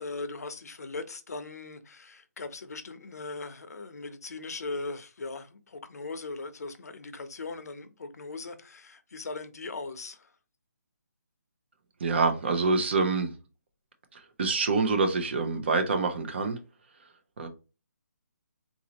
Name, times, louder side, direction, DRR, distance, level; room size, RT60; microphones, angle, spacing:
voice 1, 0.0-10.3, left 3 dB, 65° left, 0.7 m, -39 dB
voice 2, 12.0-13.3 14.1-16.6 17.4-17.5, right 4 dB, 40° right, 0.7 m, -26 dB
4.2 x 2.6 x 2.9 m
hypercardioid pair, 170°, 9 cm